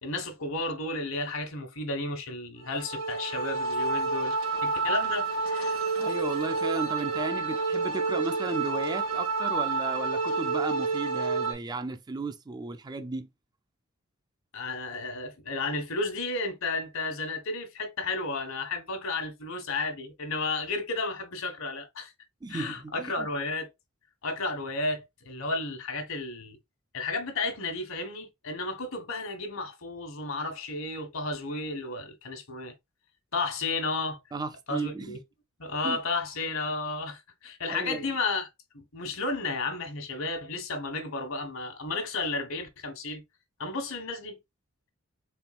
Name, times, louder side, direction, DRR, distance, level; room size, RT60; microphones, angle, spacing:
voice 1, 0.0-4.3 4.6-5.8 14.5-22.1 22.5-23.7 24.2-26.6 26.9-32.7 33.3-34.2 34.7-35.2 35.6-38.5 38.7-43.2 43.6-44.4, left 3 dB, 70° left, 1.3 m, -33 dB
sound 1, 2.6-11.5, right 4 dB, 80° right, 1.7 m, -29 dB
voice 2, 6.0-13.3 22.4-23.3 34.3-35.2 35.8-36.0 37.7-38.1, right 3 dB, 20° right, 0.4 m, -34 dB
4.2 x 3.6 x 2.4 m
head